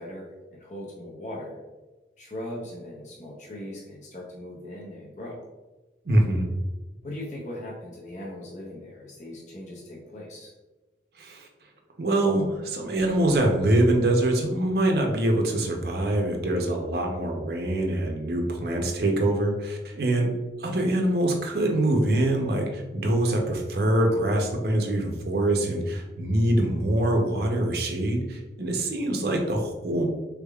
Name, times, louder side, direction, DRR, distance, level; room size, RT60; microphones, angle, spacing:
voice 1, 0.0-1.6 2.2-5.4 7.0-10.5, left 1 dB, 40° left, -3 dB, 0.6 m, -39 dB
voice 2, 6.0-6.5 11.2-11.5 12.0-20.3 20.6-30.1, right 1 dB, 65° right, 2 dB, 0.6 m, -24 dB
3.5 x 3.4 x 2.3 m, 1.1 s
head